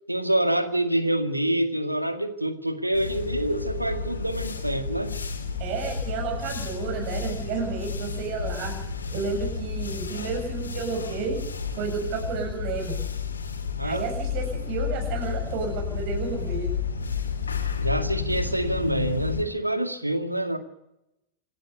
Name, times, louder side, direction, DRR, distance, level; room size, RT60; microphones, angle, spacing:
voice 1, 0.1-5.2 13.8-14.0 17.8-20.6, right 1 dB, 85° right, 8 dB, 1.9 m, -26 dB
sound 1, 2.9-19.4, left 5 dB, 75° left, 2.8 m, -31 dB
voice 2, 5.6-8.7 9.1-11.4 11.8-13.0 13.8-16.7, right 5 dB, 45° right, 3 dB, 7.0 m, -31 dB
27.0 x 12.0 x 8.3 m, 0.86 s
figure-of-eight pair, 90°, 0 cm